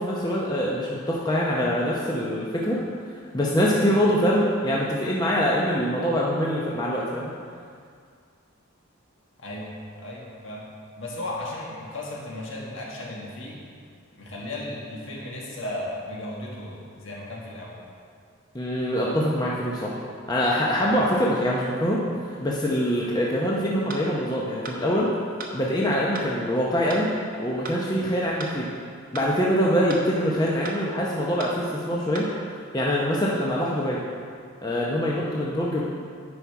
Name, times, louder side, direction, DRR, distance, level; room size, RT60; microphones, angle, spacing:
voice 1, 0.0-2.8 3.3-7.3 18.5-20.0 20.3-22.0 22.3-25.1 25.5-27.1 27.4-28.7 29.1-32.3 32.7-34.0 34.6-35.8, equal, 20° left, -4 dB, 0.7 m, -24 dB
voice 2, 9.4-10.7 11.0-13.6 14.2-17.8 20.7-20.9, left 1 dB, 60° left, -3 dB, 1.6 m, -35 dB
sound 1, 23.9-24.1 24.6-24.8 25.4-25.5 26.1-26.3 26.9-27.1 27.6-27.8 28.4-28.6 29.1-29.3 29.9-30.1 30.7-30.8 31.4-31.6 32.1-32.3, right 3 dB, 40° right, 0.9 m, -36 dB
9.7 x 5.7 x 4.7 m, 2.2 s
head